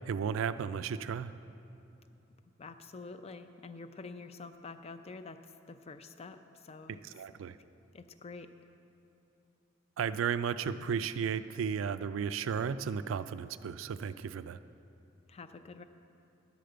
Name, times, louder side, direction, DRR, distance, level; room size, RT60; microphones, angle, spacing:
voice 1, 0.1-1.3 7.0-7.6 10.0-14.6, right 7 dB, 90° right, 13 dB, 0.3 m, -34 dB
voice 2, 2.6-5.4 5.7-7.0 7.9-8.5 15.3-15.8, left 3 dB, 30° left, 10 dB, 0.4 m, -47 dB
10.5 x 5.1 x 7.8 m, 2.8 s
head